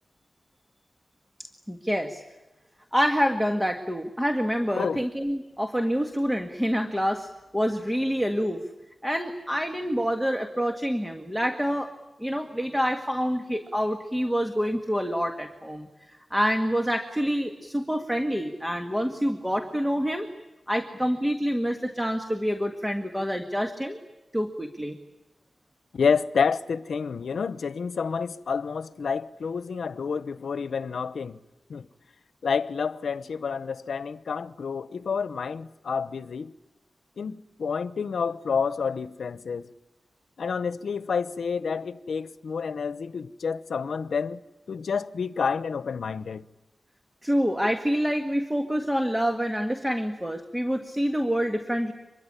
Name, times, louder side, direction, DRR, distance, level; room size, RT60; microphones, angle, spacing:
voice 1, 1.7-2.2 2.9-7.3 7.5-8.6 9.0-11.9 12.2-15.9 16.3-20.3 20.7-24.0 24.3-25.0 47.2-51.9, equal, 5° right, 1.7 m, -27 dB
voice 2, 25.9-31.4 31.7-31.9 32.4-36.5 37.2-39.7 40.4-44.4 44.7-46.4, left 6 dB, 80° left, 0.9 m, -29 dB
25.5 x 22.5 x 9.9 m
wide cardioid pair, 85°, 0 cm